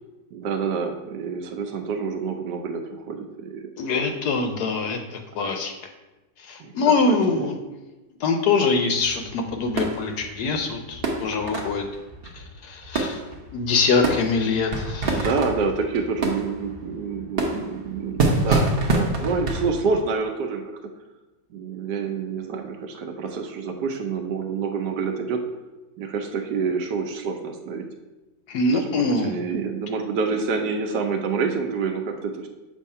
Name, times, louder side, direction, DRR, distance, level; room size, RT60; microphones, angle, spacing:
voice 1, 0.3-3.7 4.8-4.9 5.4-5.5 6.6-7.5 15.0-18.7 19.0-20.8 21.5-25.4 26.0-27.8 28.7-32.5, right 5 dB, 70° right, 4 dB, 1.1 m, -28 dB
voice 2, 3.8-5.0 5.4-5.7 6.5-7.6 8.2-11.8 12.6-13.2 13.5-15.3 18.5-18.6 28.5-29.4, left 4 dB, 70° left, 4 dB, 1.0 m, -23 dB
sound 1, 8.9-19.7, right 2 dB, 50° right, 0.7 m, -27 dB
7.0 x 2.7 x 5.4 m, 1.1 s
omnidirectional pair, 2.0 m